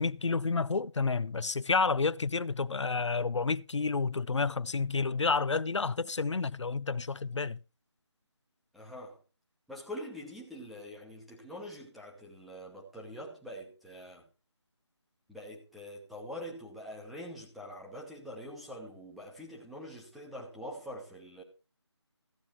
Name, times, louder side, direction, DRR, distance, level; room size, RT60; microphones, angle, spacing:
voice 1, 0.0-7.6, left 4 dB, 80° left, 0.5 m, -30 dB
voice 2, 8.7-9.2 9.7-14.2 15.3-21.4, equal, ahead, 1.0 m, -44 dB
14.5 x 8.5 x 4.4 m
figure-of-eight pair, 165°, 15 cm